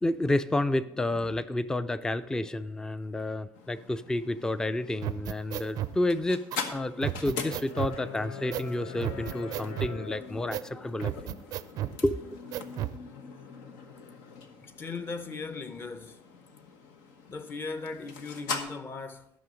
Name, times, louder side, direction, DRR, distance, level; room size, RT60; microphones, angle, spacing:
voice 1, 0.0-6.4 6.7-11.3 12.0-12.2, left 1 dB, 10° left, 0.4 m, -30 dB
sound 1, 3.5-18.6, left 5 dB, 90° left, 1.1 m, -42 dB
sound 2, 5.0-6.0 6.5-6.6 7.0-8.0 8.5-8.7 9.0-10.0 10.5-10.7 11.0-12.0 12.5-13.0, right 13 dB, 60° right, 0.4 m, -33 dB
voice 2, 14.6-16.2 17.3-19.3, left 4 dB, 30° left, 0.9 m, -38 dB
12.5 x 6.2 x 5.1 m
cardioid pair, 115°, 7 cm